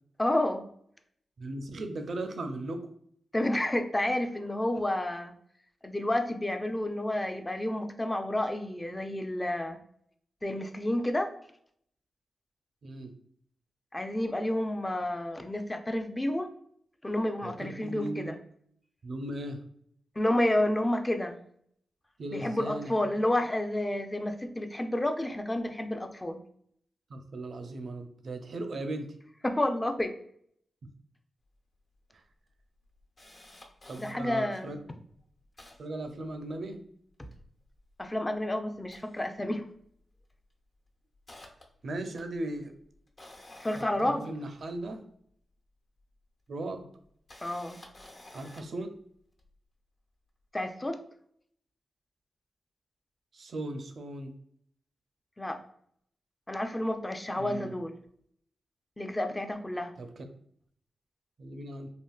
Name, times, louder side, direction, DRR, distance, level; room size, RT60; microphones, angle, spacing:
voice 1, 0.2-0.6 3.3-5.3 5.8-9.8 10.4-11.3 13.9-16.5 17.0-18.3 20.2-21.4 22.3-26.4 29.4-30.1 34.0-34.7 38.0-39.6 43.6-44.3 47.4-47.8 50.5-51.0 55.4-55.6 56.5-57.9 59.0-59.9, left 1 dB, 20° left, 6 dB, 0.4 m, -30 dB
voice 2, 1.4-2.9 12.8-13.1 17.4-18.4 19.0-19.6 22.2-23.3 27.1-29.1 32.1-32.2 33.8-34.8 35.8-36.8 41.8-42.7 43.7-45.1 46.5-46.8 48.3-48.9 53.3-54.3 57.4-57.7 60.0-60.2 61.4-61.9, right 2 dB, 65° right, 6 dB, 0.4 m, -37 dB
Camera, 31.5-31.6 31.9-32.0 32.5-34.1 34.8-34.9 35.1-36.8 37.1-38.3 38.7-39.9 40.2-40.4 40.9-44.9 46.0-46.1 47.0-48.8 49.4-49.5, left 1 dB, 50° left, 0.8 m, -53 dB
3.5 x 2.4 x 2.3 m, 0.66 s
cardioid pair, 55°, 0 cm